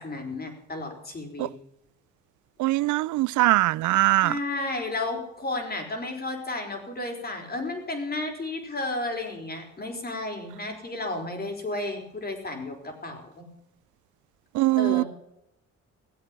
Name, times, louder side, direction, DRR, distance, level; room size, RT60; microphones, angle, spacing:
voice 1, 0.0-1.5 4.2-13.5 14.8-15.1, left 2 dB, 30° left, 4.9 m, -33 dB
voice 2, 2.6-4.3 14.6-15.0, right 18 dB, 75° right, 0.5 m, -21 dB
18.5 x 8.1 x 7.5 m
cardioid pair, 90°, 30 cm